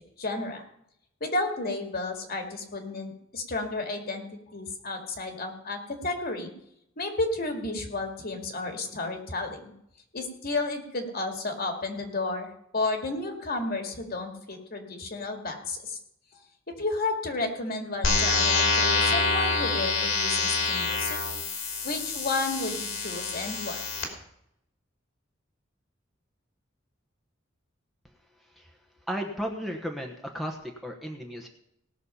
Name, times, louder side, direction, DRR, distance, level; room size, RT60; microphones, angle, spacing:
voice 1, 0.2-0.6 1.2-4.2 4.5-6.5 7.0-9.7 10.1-16.0 16.8-21.2 21.8-23.8, left 2 dB, 50° left, 4 dB, 2.1 m, -32 dB
sound 1, 18.0-24.0, left 4 dB, 70° left, 2.8 m, -26 dB
voice 2, 29.1-31.5, equal, ahead, 1 dB, 1.1 m, -34 dB
18.5 x 6.5 x 5.6 m, 0.76 s
head